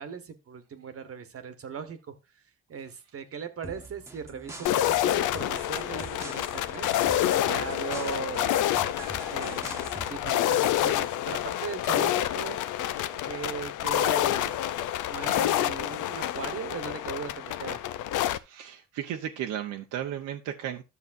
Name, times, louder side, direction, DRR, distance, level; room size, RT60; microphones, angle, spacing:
voice 1, 0.0-2.1 2.7-6.9 7.3-8.6 9.3-12.6 13.2-14.5 15.1-17.8, right 6 dB, 50° right, 9 dB, 1.2 m, -38 dB
sound 1, 3.6-10.4, right 2 dB, 10° right, 1.2 m, -44 dB
sound 2, 4.6-18.4, left 12 dB, 85° left, 0.6 m, -28 dB
voice 2, 18.4-20.8, right 10 dB, 85° right, 3 dB, 0.8 m, -34 dB
11.0 x 6.6 x 2.5 m, 0.26 s
cardioid pair, 90°, 30 cm